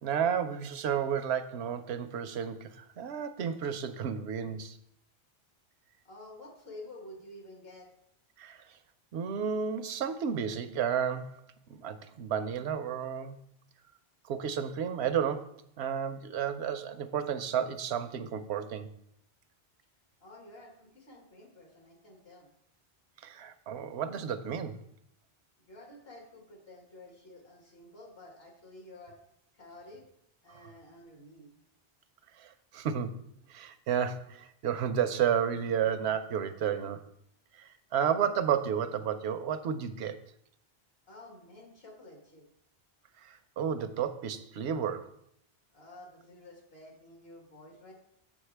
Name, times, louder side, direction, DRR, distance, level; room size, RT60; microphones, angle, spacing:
voice 1, 0.0-4.8 8.4-8.6 9.1-11.4 11.7-13.4 14.3-18.9 23.2-24.8 32.4-33.2 33.5-37.0 37.5-40.2 43.2-45.1, right 8 dB, 85° right, 11 dB, 0.9 m, -32 dB
voice 2, 6.0-7.9 20.2-22.5 25.6-29.2 29.5-30.1 30.4-31.5 41.1-42.5 45.7-47.9, left 1 dB, 65° left, 0 dB, 2.1 m, -51 dB
7.5 x 7.1 x 3.3 m, 0.72 s
omnidirectional pair, 1.1 m